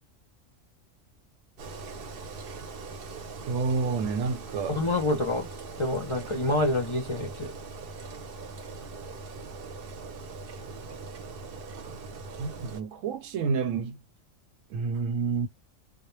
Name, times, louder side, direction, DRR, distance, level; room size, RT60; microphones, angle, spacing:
Engine, 1.6-12.8, right 4 dB, 55° right, 0.7 m, -41 dB
voice 1, 3.5-4.8 12.4-14.0 14.7-15.5, right 5 dB, 85° right, 1.0 m, -29 dB
voice 2, 4.7-5.5 5.8-7.5, left 2 dB, 40° left, 0.4 m, -27 dB
2.2 x 2.1 x 3.0 m
omnidirectional pair, 1.3 m